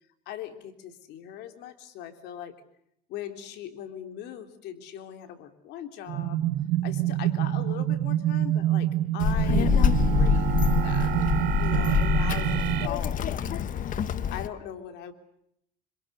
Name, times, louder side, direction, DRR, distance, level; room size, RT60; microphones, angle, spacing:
voice 1, 0.3-2.5 3.1-6.4 6.8-10.5 10.8-11.2 11.6-13.5 14.3-15.1, left 10 dB, 85° left, 7 dB, 3.5 m, -40 dB
sound 1, 6.1-12.9, right 13 dB, 80° right, 1.3 m, -26 dB
Child speech kid speaking, 9.2-14.5, left 8 dB, 50° left, 1.3 m, -25 dB
27.5 x 26.5 x 6.8 m, 0.74 s
cardioid pair, 110°, 17 cm